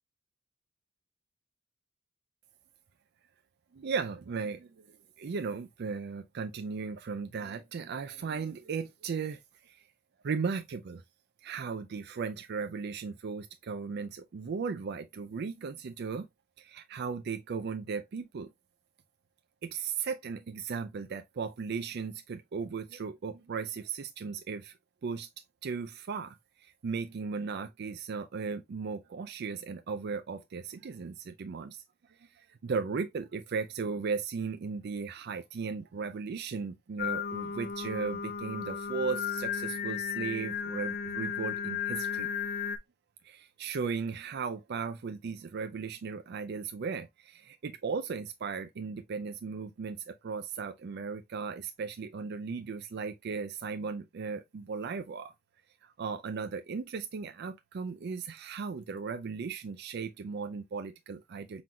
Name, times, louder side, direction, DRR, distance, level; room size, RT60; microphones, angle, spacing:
voice 1, 3.7-9.8 10.2-11.0 11.4-16.3 16.6-18.5 19.6-24.7 25.0-25.3 25.6-42.3 43.2-55.3 55.8-61.6, right 5 dB, 50° right, 0.4 m, -36 dB
Singing, 37.0-42.8, left 7 dB, 45° left, 0.5 m, -34 dB
5.9 x 3.8 x 2.2 m
head